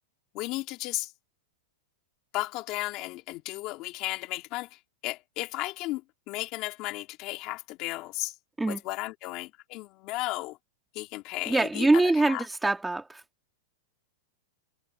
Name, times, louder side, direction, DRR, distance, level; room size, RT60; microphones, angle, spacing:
voice 1, 0.3-1.1 2.3-6.0 6.3-8.3 8.7-10.6 10.9-12.5, left 19 dB, 35° left, 2.6 m, -34 dB
voice 2, 11.5-13.2, right 2 dB, 5° right, 2.6 m, -24 dB
supercardioid pair, 165°, 0 cm